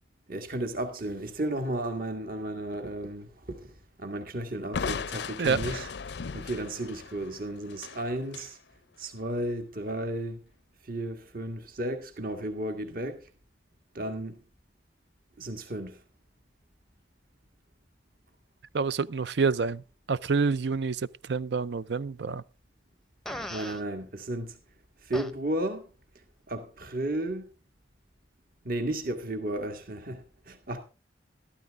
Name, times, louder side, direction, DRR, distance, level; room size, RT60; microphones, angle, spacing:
voice 1, 0.3-8.6 9.0-10.4 10.8-13.2 13.9-14.4 15.4-16.0 23.5-24.6 25.0-25.9 26.5-27.5 28.7-30.8, right 1 dB, 50° right, 1.7 m, -34 dB
Crushing, 4.7-8.5, left 5 dB, 70° left, 0.5 m, -36 dB
voice 2, 5.4-5.8 18.7-19.8 20.1-21.0 21.3-22.4, right 4 dB, 70° right, 0.5 m, -27 dB
Fart, 23.3-23.8 25.1-25.3, left 1 dB, ahead, 0.7 m, -37 dB
13.5 x 13.0 x 3.6 m
head